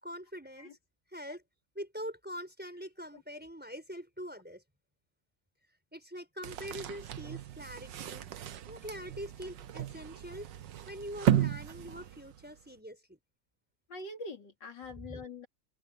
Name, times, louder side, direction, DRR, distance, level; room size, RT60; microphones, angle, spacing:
voice 1, 0.0-0.8 1.1-1.4 1.7-4.6 5.9-8.3 8.7-10.5 10.9-13.2 15.1-15.2, equal, 5° right, 5.1 m, -43 dB
sound 1, 6.4-12.6, right 10 dB, 85° right, 1.7 m, -34 dB
voice 2, 13.9-15.5, left 2 dB, 85° left, 3.1 m, -44 dB
omnidirectional pair, 1.9 m